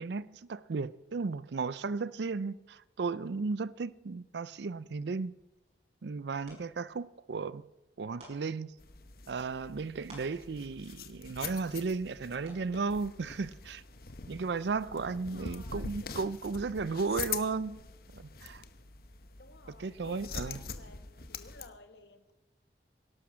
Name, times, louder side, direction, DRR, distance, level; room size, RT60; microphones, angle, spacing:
voice 1, 0.0-5.3 6.0-7.6 8.0-8.7 9.3-13.8 14.3-17.8 18.1-18.6 19.8-20.6, right 4 dB, 70° right, 0.5 m, -35 dB
sound 1, 5.3-16.0, right 1 dB, 40° right, 6.3 m, -61 dB
sound 2, 8.8-21.7, left 6 dB, 55° left, 1.0 m, -44 dB
voice 2, 15.1-16.3 16.8-17.0 19.4-22.3, left 2 dB, 70° left, 1.6 m, -54 dB
17.5 x 12.0 x 6.3 m
head